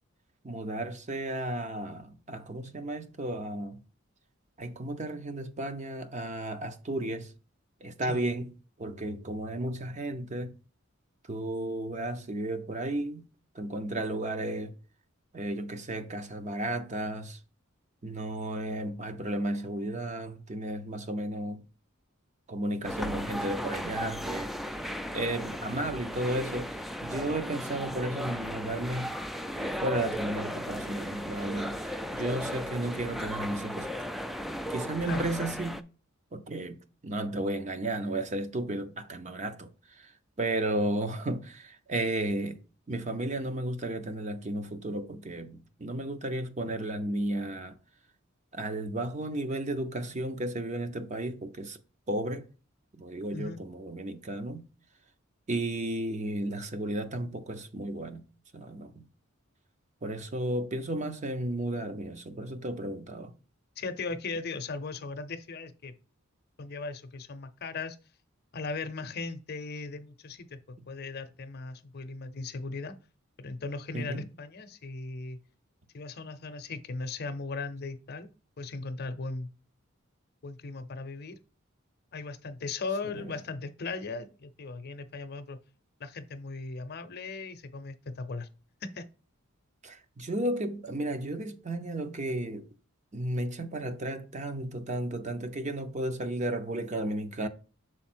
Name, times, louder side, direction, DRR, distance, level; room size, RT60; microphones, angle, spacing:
voice 1, 0.4-3.8 4.6-7.3 7.8-8.5 8.8-10.5 11.3-13.3 13.5-14.7 15.3-17.4 18.0-21.6 22.5-24.6 25.1-29.2 29.6-33.9 34.7-35.8 36.3-36.8 37.0-39.7 40.0-40.1 40.4-42.6 42.9-47.7 48.5-51.8 52.1-52.4 53.0-54.7 55.5-58.2 58.5-59.0 60.0-63.3 73.9-74.3 83.0-83.3 89.8-92.7 93.1-97.5, right 1 dB, 35° right, 0.7 m, -33 dB
sound 1, 22.8-35.8, equal, ahead, 0.3 m, -36 dB
voice 2, 63.8-65.9 66.6-68.0 68.5-72.9 73.4-75.4 75.9-78.3 78.6-79.5 80.4-81.4 82.1-85.6 86.0-88.5 88.8-89.0, left 3 dB, 50° left, 0.6 m, -38 dB
6.3 x 4.1 x 4.4 m
head